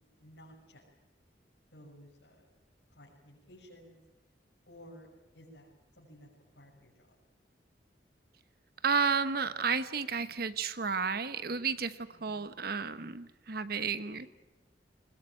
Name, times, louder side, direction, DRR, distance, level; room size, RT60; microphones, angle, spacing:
voice 1, 0.2-0.8 1.6-2.4 2.9-4.0 4.7-5.1 5.3-6.3 6.5-7.1 12.1-12.5, equal, 80° left, -3 dB, 6.2 m, -55 dB
voice 2, 8.8-14.3, right 5 dB, 60° right, 12 dB, 1.2 m, -32 dB
21.5 x 20.5 x 9.0 m, 1.1 s
head